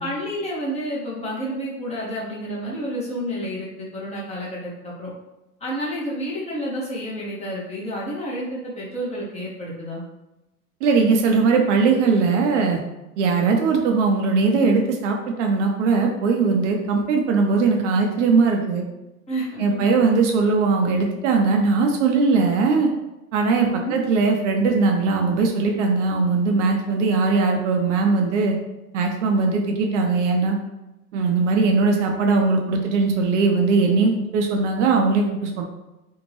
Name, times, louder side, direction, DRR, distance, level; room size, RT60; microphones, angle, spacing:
voice 1, 0.0-5.1 5.6-10.0 19.3-19.8 23.5-23.9, equal, 15° left, -5 dB, 0.6 m, -30 dB
voice 2, 10.8-12.8 13.2-18.8 19.6-22.9 23.3-28.6 28.9-30.6 31.1-35.6, right 4 dB, 50° right, 2 dB, 0.5 m, -20 dB
2.6 x 2.1 x 3.0 m, 0.97 s
hypercardioid pair, 100°, 47 cm